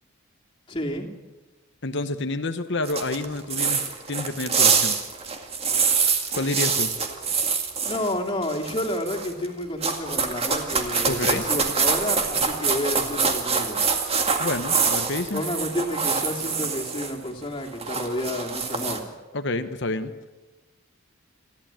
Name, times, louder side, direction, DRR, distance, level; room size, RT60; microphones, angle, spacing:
voice 1, 0.7-1.1 7.8-13.8 15.3-19.1, left 1 dB, 25° left, 0 dB, 2.8 m, -30 dB
voice 2, 1.8-5.0 6.4-6.9 11.1-11.5 14.4-15.4 19.3-20.1, left 2 dB, 55° left, 9 dB, 1.1 m, -28 dB
sound 1, 2.8-8.1 8.4-9.4 9.8-17.1 17.4-19.0, right 5 dB, 30° right, 2.1 m, -25 dB
29.0 x 12.0 x 8.9 m, 1.2 s
head